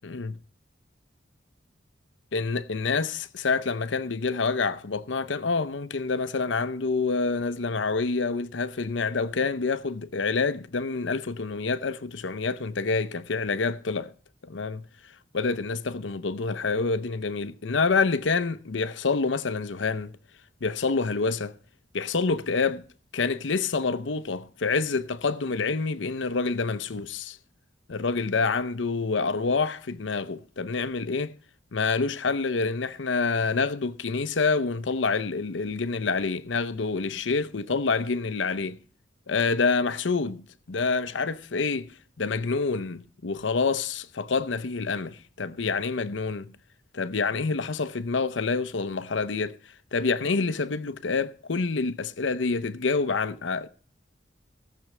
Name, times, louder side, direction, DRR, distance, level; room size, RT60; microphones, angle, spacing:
voice 1, 0.0-0.4 2.3-14.1 14.4-14.9 15.3-20.1 20.6-21.5 21.9-22.8 23.1-27.4 27.9-31.3 31.7-38.8 39.3-40.4 40.7-46.5 46.9-53.7, left 4 dB, 90° left, 0.7 m, -27 dB
18.0 x 6.7 x 6.0 m
head